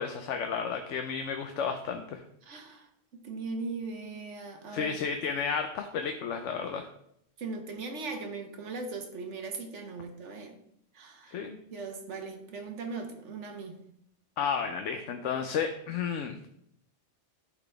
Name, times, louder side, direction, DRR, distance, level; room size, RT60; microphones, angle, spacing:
voice 1, 0.0-2.2 4.7-6.9 11.3-11.6 14.4-16.4, left 6 dB, 85° left, 6 dB, 1.0 m, -32 dB
voice 2, 2.4-4.9 7.4-10.6 10.9-11.4 11.7-13.8, right 3 dB, 75° right, 4 dB, 1.4 m, -39 dB
12.0 x 4.1 x 3.3 m, 0.72 s
omnidirectional pair, 1.2 m